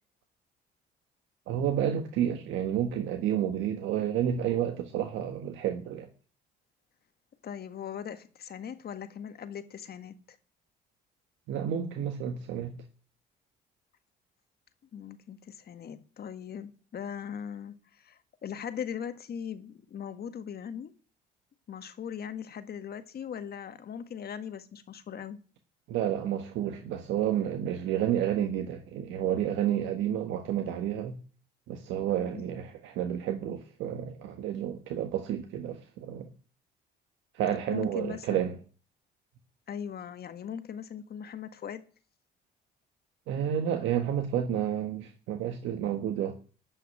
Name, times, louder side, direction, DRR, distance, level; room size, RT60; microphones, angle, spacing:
voice 1, 1.5-6.1 11.5-12.8 25.9-31.1 31.7-36.3 37.3-38.6 43.3-46.4, right 10 dB, 85° right, 1.5 m, -30 dB
voice 2, 7.4-10.2 14.9-20.9 21.7-25.4 32.2-32.5 37.7-38.5 39.7-41.8, left 8 dB, 55° left, 1.6 m, -39 dB
13.5 x 5.8 x 9.7 m
supercardioid pair, 75°, 19 cm